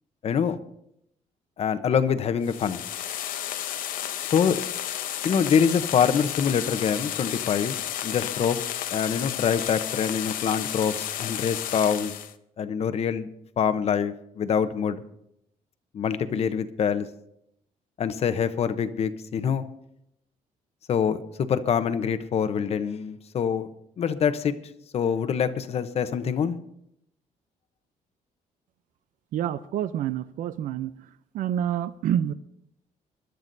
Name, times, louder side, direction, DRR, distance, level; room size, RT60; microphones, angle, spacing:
voice 1, 0.2-0.6 1.6-2.8 4.2-4.6 5.2-7.8 8.0-8.6 8.9-12.1 12.6-13.3 13.6-15.0 15.9-17.1 18.0-19.6 20.9-23.7 24.0-24.5 24.9-26.6, left 7 dB, 45° left, 11 dB, 0.8 m, -25 dB
sound 1, 2.4-12.3, left 11 dB, 80° left, 0.8 m, -32 dB
voice 2, 29.3-30.9 31.3-32.3, right 10 dB, 70° right, 13 dB, 0.5 m, -27 dB
24.5 x 12.0 x 2.7 m, 0.77 s
cardioid pair, 135°, 14 cm